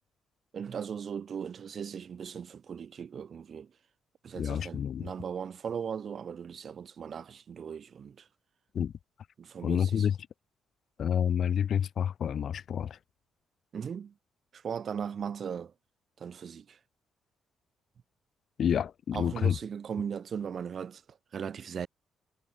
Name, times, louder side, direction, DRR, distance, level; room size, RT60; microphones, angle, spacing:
voice 1, 0.5-3.7 4.2-8.3 9.4-10.1 13.7-14.1 14.5-15.7 16.2-16.8 19.1-21.0 21.3-21.9, right 7 dB, 50° right, 3.7 m, -38 dB
voice 2, 4.4-5.1 8.7-8.9 9.6-10.1 11.0-13.0 18.6-19.5, left 8 dB, 60° left, 1.4 m, -28 dB
cardioid pair, 90°, 0 cm